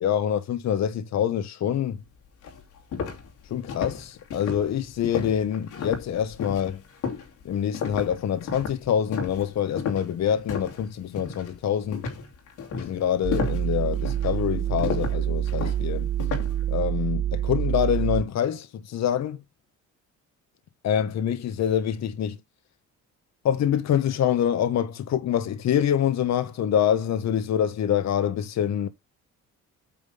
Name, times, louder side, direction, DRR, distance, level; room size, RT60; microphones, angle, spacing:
voice 1, 0.0-2.0 3.4-6.8 7.4-12.1 12.8-16.1 16.7-19.4 20.8-22.4 23.4-28.9, left 9 dB, 65° left, 1.0 m, -25 dB
sound 1, 1.9-2.0 2.4-10.9 11.2-11.5 11.9-16.6, left 6 dB, 85° left, 2.7 m, -33 dB
sound 2, 13.2-18.2, right 11 dB, 30° right, 0.4 m, -27 dB
8.7 x 3.6 x 5.5 m
cardioid pair, 90°, 30 cm